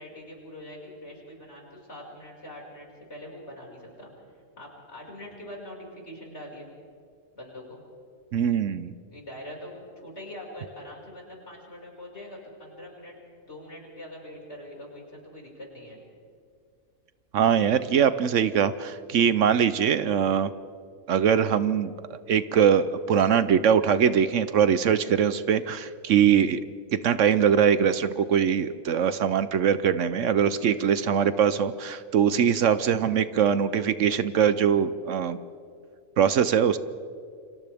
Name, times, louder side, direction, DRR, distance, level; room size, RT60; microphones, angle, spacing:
voice 1, 0.0-4.1 4.6-6.7 7.3-7.8 9.1-13.2 13.4-16.0, left 1 dB, 55° left, -2 dB, 5.9 m, -43 dB
voice 2, 8.3-8.9 17.3-20.5 21.1-26.6 27.0-35.4 36.2-36.8, right 8 dB, 70° right, 13 dB, 1.0 m, -22 dB
29.5 x 25.5 x 3.5 m, 2.3 s
omnidirectional pair, 1.4 m